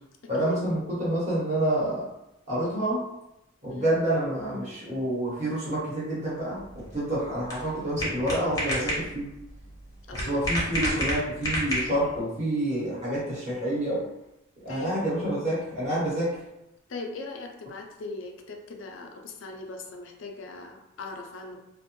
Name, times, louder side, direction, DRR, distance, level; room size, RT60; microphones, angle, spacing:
voice 1, 0.3-2.0 2.5-3.0 3.6-9.3 10.1-14.0 14.6-16.3, right 1 dB, 35° right, -8 dB, 1.0 m, -28 dB
sound 1, 6.6-12.2, equal, 15° left, 0.7 m, -31 dB
voice 2, 10.1-10.5 14.7-15.0 16.9-21.6, left 3 dB, 65° left, 3 dB, 0.4 m, -39 dB
2.5 x 2.1 x 2.9 m, 0.89 s
head